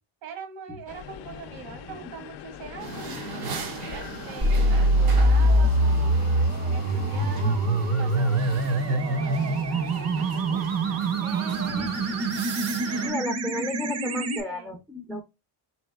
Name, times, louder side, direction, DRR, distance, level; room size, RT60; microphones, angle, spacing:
voice 1, 0.2-3.1 3.9-6.2 6.7-9.7 11.2-12.0 14.3-14.8, right 7 dB, 70° right, 5 dB, 2.2 m, -42 dB
sound 1, 0.9-12.4, left 10 dB, 55° left, 0.6 m, -43 dB
sound 2, 2.8-13.1, right 5 dB, 90° right, 2.1 m, -38 dB
sound 3, 4.4-14.4, right 1 dB, 30° right, 0.8 m, -24 dB
voice 2, 7.2-7.6 9.4-9.7 11.7-11.9 13.0-15.2, left 1 dB, ahead, 3 dB, 0.5 m, -35 dB
4.3 x 3.5 x 2.3 m, 0.23 s
cardioid pair, 140°, 48 cm